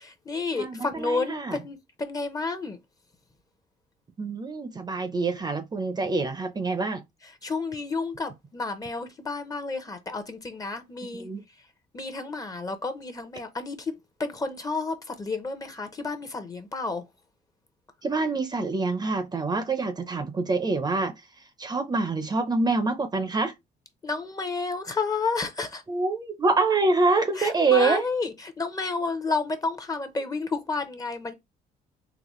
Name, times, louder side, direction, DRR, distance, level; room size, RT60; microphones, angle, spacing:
voice 1, 0.0-2.8 7.4-11.3 11.9-13.9 14.2-17.0 24.0-25.8 27.4-31.3, left 3 dB, 20° left, 0.8 m, -31 dB
voice 2, 0.6-1.6 4.2-7.0 11.1-11.4 18.0-21.1 21.6-23.5 25.9-28.0, right 3 dB, 25° right, 0.6 m, -26 dB
4.0 x 2.8 x 3.1 m
cardioid pair, 110°, 17 cm